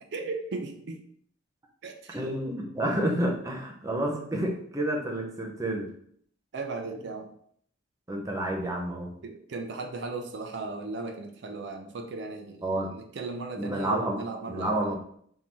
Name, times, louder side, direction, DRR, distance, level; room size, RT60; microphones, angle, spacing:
voice 1, 0.1-1.0 1.8-2.3 2.9-3.0 6.5-7.3 9.2-15.0, right 3 dB, 60° right, 5 dB, 0.4 m, -37 dB
voice 2, 2.1-5.9 8.1-9.1 12.6-12.9 13.6-14.2 14.5-15.0, right 1 dB, 15° right, -1 dB, 0.6 m, -29 dB
3.7 x 2.7 x 3.0 m, 0.64 s
head